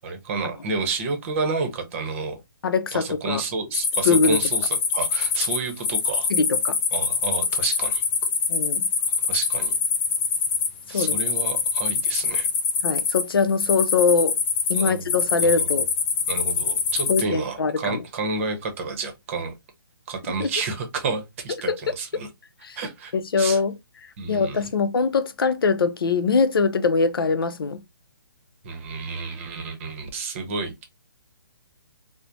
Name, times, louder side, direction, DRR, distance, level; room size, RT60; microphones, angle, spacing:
voice 1, 0.0-2.4 2.9-6.3 6.9-8.0 9.3-9.7 10.9-12.5 14.7-15.1 15.4-15.7 16.3-19.5 20.1-22.3 22.8-23.6 24.2-24.6 28.6-30.8, right 4 dB, 35° right, 0.8 m, -30 dB
voice 2, 2.6-3.4 4.1-4.4 6.3-6.7 8.5-8.9 10.9-11.2 12.8-14.4 14.7-15.9 17.1-18.0 20.4-20.5 21.7-21.8 22.6-22.8 23.1-23.7 24.3-27.8, left 4 dB, 80° left, 0.5 m, -22 dB
sound 1, 3.7-17.2, left 5 dB, 10° left, 0.3 m, -24 dB
3.1 x 2.1 x 2.5 m
hypercardioid pair, 150°, 12 cm